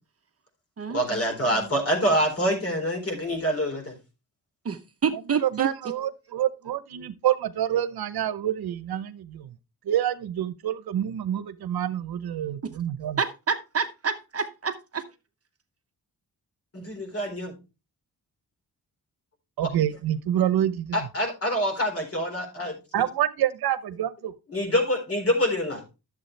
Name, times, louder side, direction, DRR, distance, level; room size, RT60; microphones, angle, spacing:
voice 1, 0.9-3.9 16.7-17.5 19.6-19.7 20.9-23.0 24.5-25.8, equal, 40° left, 4.2 m, -26 dB
voice 2, 4.6-5.9 12.6-12.7 13.2-15.0, right 6 dB, 40° right, 0.9 m, -28 dB
voice 3, 5.4-9.5 9.9-13.2 19.6-21.1 22.9-24.3, right 11 dB, 80° right, 0.9 m, -27 dB
12.0 x 7.4 x 3.3 m
cardioid pair, 115°, 37 cm